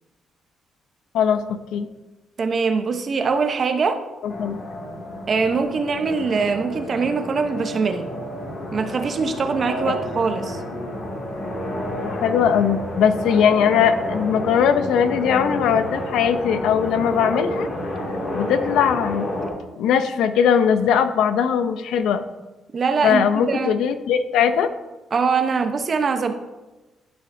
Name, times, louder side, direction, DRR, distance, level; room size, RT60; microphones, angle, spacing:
voice 1, 1.1-1.9 4.2-4.6 12.0-17.7 18.3-19.3 19.8-22.2 23.0-24.7, left 7 dB, 85° left, 10 dB, 0.6 m, -20 dB
voice 2, 2.4-4.0 5.3-8.1 8.7-10.6 22.7-23.8 25.1-26.3, right 5 dB, 45° right, 7 dB, 0.8 m, -22 dB
sound 1, 4.3-19.5, left 1 dB, 55° left, 2.3 m, -30 dB
11.5 x 5.6 x 2.7 m, 1.1 s
cardioid pair, 90°, 0 cm